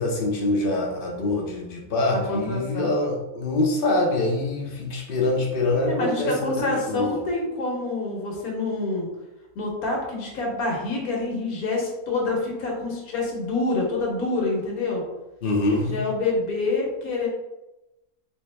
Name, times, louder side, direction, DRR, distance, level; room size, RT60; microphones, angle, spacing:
voice 1, 0.0-7.2 15.4-16.0, left 2 dB, 50° left, -1 dB, 0.7 m, -25 dB
voice 2, 2.1-2.9 5.9-9.1 9.5-15.0 15.8-17.3, left 3 dB, 75° left, -1 dB, 1.4 m, -27 dB
3.4 x 2.9 x 3.2 m, 1.0 s
omnidirectional pair, 1.6 m